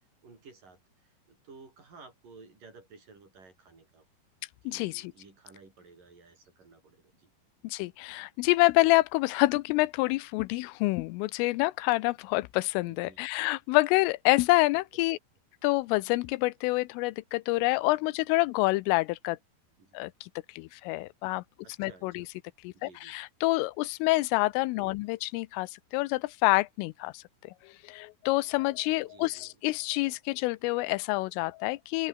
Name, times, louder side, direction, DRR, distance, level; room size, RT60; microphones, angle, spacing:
voice 1, 0.2-4.1 4.6-7.3 12.9-13.2 19.8-20.0 21.6-22.3 22.7-23.1 24.7-25.0 28.9-29.6, right 4 dB, 40° right, 8.5 m, -54 dB
voice 2, 4.7-5.1 7.6-15.2 15.6-19.4 19.9-20.3 20.6-21.4 21.8-22.3 22.6-32.1, left 21 dB, 85° left, 3.2 m, -27 dB
open air
omnidirectional pair, 5.8 m